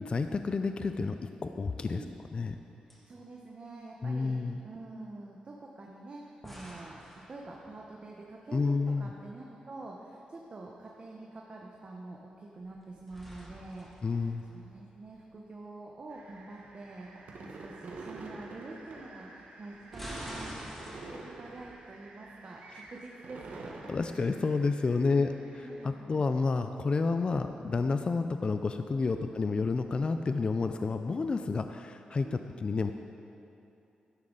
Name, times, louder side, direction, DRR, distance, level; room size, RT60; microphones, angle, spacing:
voice 1, 0.0-2.0 2.3-2.5 4.0-4.6 8.5-9.1 14.0-14.4 23.9-25.3 25.8-32.9, left 4 dB, 40° left, 8 dB, 0.4 m, -30 dB
sound 1, 2.0-2.6 2.9-3.0 6.4-8.1 12.6-15.2 19.6-21.7, equal, 5° left, 1.9 m, -47 dB
voice 2, 2.9-8.7 9.0-17.1 17.4-20.6 21.1-23.8 25.0-26.3 29.1-29.3 32.2-32.4, right 2 dB, 40° right, -1 dB, 1.0 m, -47 dB
sound 2, 16.1-25.9, right 3 dB, 85° right, 1.3 m, -47 dB
12.5 x 9.6 x 3.9 m, 2.8 s
cardioid pair, 90°, 3 cm